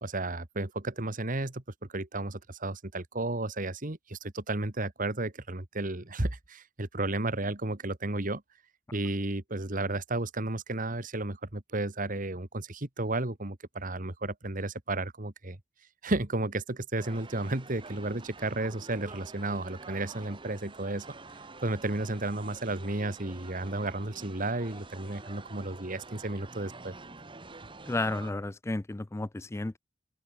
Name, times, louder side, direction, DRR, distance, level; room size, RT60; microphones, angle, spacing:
voice 1, 0.0-1.6 1.9-8.4 8.9-15.6 16.0-21.1 21.6-26.9, right 2 dB, 45° right, 1.9 m, -33 dB
sound 1, 17.0-28.3, right 3 dB, 25° right, 1.5 m, -48 dB
voice 2, 27.9-29.8, left 2 dB, 15° left, 0.4 m, -32 dB
open air
head